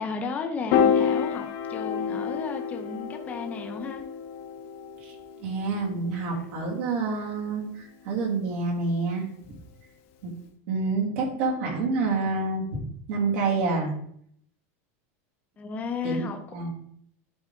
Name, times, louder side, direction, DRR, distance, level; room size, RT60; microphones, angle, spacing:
voice 1, 0.0-4.0 6.2-6.4 15.6-16.4, left 4 dB, 20° left, 4 dB, 0.8 m, -34 dB
Piano, 0.7-7.1, left 7 dB, 55° left, 1.0 m, -29 dB
voice 2, 5.4-9.3 10.2-10.3 10.7-12.8 13.1-14.0 16.0-16.2 16.5-16.7, right 3 dB, 65° right, -1 dB, 2.6 m, -27 dB
11.5 x 4.0 x 3.8 m, 0.65 s
supercardioid pair, 160°, 8 cm